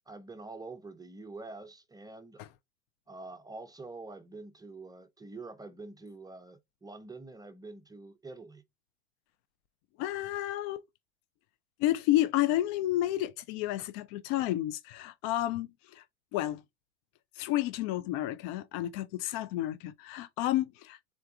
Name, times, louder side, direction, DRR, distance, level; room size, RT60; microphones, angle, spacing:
voice 1, 0.0-2.5 3.1-8.6, right 3 dB, 10° right, 0.7 m, -46 dB
voice 2, 10.0-10.8 11.8-16.0 16.3-16.6 17.3-21.0, left 14 dB, 50° left, 0.6 m, -31 dB
3.8 x 3.4 x 3.5 m
hypercardioid pair, 90°, 32 cm